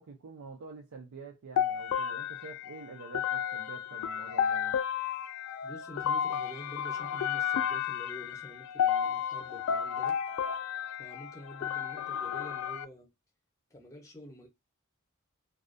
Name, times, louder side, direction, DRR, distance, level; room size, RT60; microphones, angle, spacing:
voice 1, 0.0-4.8, right 4 dB, 75° right, 0.5 m, -47 dB
sound 1, 1.6-12.8, left 8 dB, 70° left, 0.3 m, -32 dB
voice 2, 5.6-10.2 11.0-13.1 13.7-14.5, equal, 15° left, 0.6 m, -47 dB
2.3 x 2.1 x 2.5 m
head